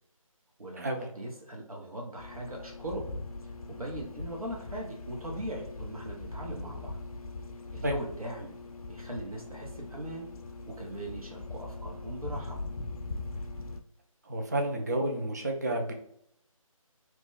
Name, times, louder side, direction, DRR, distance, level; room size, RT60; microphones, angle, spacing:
voice 1, 0.6-3.1 3.4-7.0 7.7-8.5 8.9-10.3 10.6-12.6, right 1 dB, 85° right, 0 dB, 0.9 m, -40 dB
sound 1, 2.2-13.8, left 2 dB, 85° left, 0.4 m, -41 dB
voice 2, 14.3-15.9, right 1 dB, 30° right, 3 dB, 0.3 m, -30 dB
2.9 x 2.1 x 3.5 m, 0.72 s
figure-of-eight pair, 160°, 18 cm